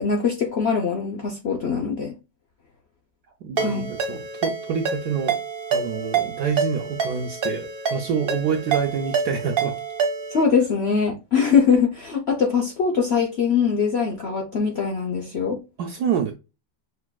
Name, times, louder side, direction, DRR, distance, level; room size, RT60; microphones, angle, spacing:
voice 1, 0.0-2.1 3.6-3.9 10.3-15.6, left 6 dB, 60° left, 0.6 m, -22 dB
voice 2, 3.4-5.4 5.7-9.8 15.8-16.3, right 7 dB, 70° right, 1.0 m, -27 dB
Ringtone, 3.6-10.4, right 6 dB, 45° right, 0.8 m, -27 dB
6.5 x 2.5 x 2.3 m
omnidirectional pair, 2.0 m